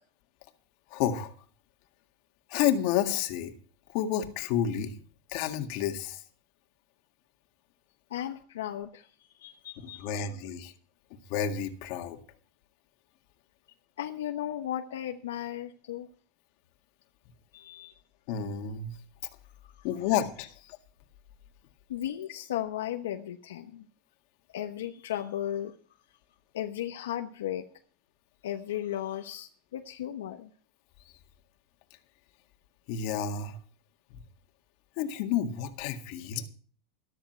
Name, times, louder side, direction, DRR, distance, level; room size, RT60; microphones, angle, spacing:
voice 1, 0.9-1.3 2.5-3.5 3.9-4.9 5.3-6.2 9.8-10.7 11.1-12.2 18.3-19.0 19.8-20.8 32.9-33.6 35.0-36.4, left 9 dB, 60° left, 6 dB, 1.9 m, -30 dB
voice 2, 8.1-10.3 14.0-16.1 17.5-17.9 19.6-19.8 21.9-23.9 24.5-25.7 26.5-27.6 28.4-30.5, left 11 dB, 90° left, 5 dB, 1.0 m, -35 dB
13.5 x 13.0 x 4.5 m, 0.43 s
supercardioid pair, 115°, 0 cm